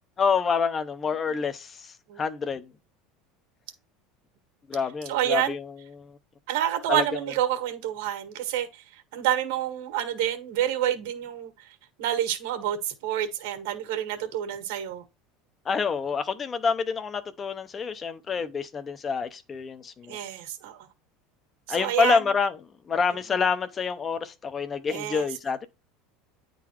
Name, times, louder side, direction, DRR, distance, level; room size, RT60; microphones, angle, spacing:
voice 1, 0.2-2.7 4.7-5.7 5.9-6.2 6.9-7.0 15.7-20.2 21.7-22.5 22.9-25.7, left 5 dB, 20° left, 0.7 m, -27 dB
voice 2, 5.0-5.6 6.5-15.0 20.1-20.9 21.7-22.3 24.9-25.3, right 11 dB, 75° right, 1.6 m, -28 dB
9.6 x 3.9 x 3.0 m
cardioid pair, 160°, 0 cm